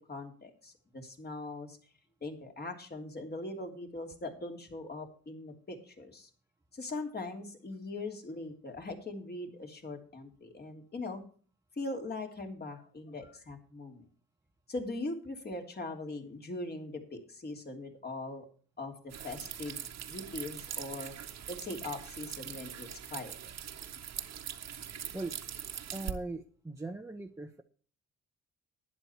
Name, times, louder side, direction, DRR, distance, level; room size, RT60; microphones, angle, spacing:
voice 1, 0.1-1.8 2.2-6.3 6.7-11.2 11.8-14.0 14.7-18.4 18.8-23.3, left 2 dB, 30° left, 4 dB, 3.2 m, -41 dB
sound 1, 19.1-26.1, right 9 dB, 60° right, 1.5 m, -42 dB
voice 2, 25.9-27.6, right 2 dB, 10° right, 3 dB, 1.0 m, -40 dB
12.0 x 10.0 x 4.5 m, 0.41 s
cardioid pair, 90°, 30 cm